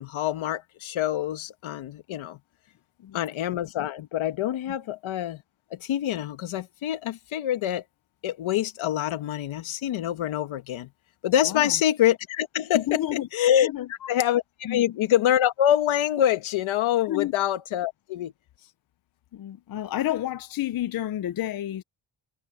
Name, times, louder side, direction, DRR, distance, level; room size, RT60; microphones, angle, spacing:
voice 1, 0.0-2.4 3.1-5.4 5.7-7.8 8.2-10.9 11.2-18.3, left 11 dB, 70° left, 1.6 m, -25 dB
voice 2, 12.7-13.3 13.6-14.1 14.6-14.8 17.1-17.3 19.3-21.8, left 13 dB, 45° left, 0.6 m, -30 dB
cardioid pair, 130°, 49 cm